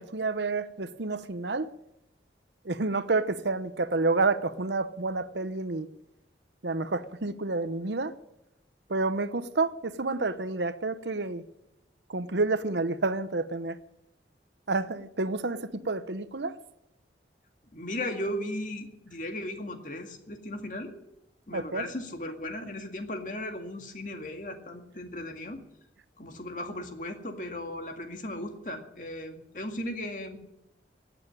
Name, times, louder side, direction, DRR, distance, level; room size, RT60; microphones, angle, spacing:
voice 1, 0.0-1.7 2.6-5.9 6.6-8.1 8.9-11.4 12.1-13.8 14.7-16.6 21.5-21.8, right 3 dB, 80° right, 0.9 m, -29 dB
voice 2, 17.7-21.0 21.5-25.6 26.2-30.4, left 1 dB, 45° left, 2.1 m, -36 dB
16.0 x 9.0 x 9.8 m
head